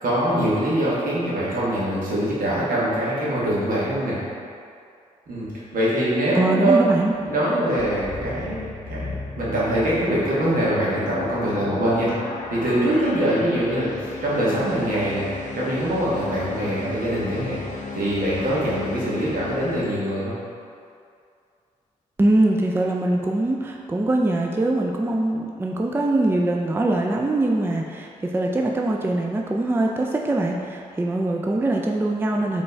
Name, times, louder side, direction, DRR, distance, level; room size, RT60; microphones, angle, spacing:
voice 1, 0.0-4.2 5.3-6.8 7.2-12.1 12.5-13.9 14.2-15.3 15.5-17.6 17.9-20.3, right 1 dB, 70° right, -8 dB, 1.5 m, -23 dB
voice 2, 6.3-7.1 22.2-32.6, right 2 dB, 15° right, 0 dB, 0.4 m, -22 dB
sound 1, 7.8-19.9, left 4 dB, 55° left, 0.5 m, -35 dB
4.2 x 3.3 x 3.3 m, 2.4 s
supercardioid pair, 45°, 15 cm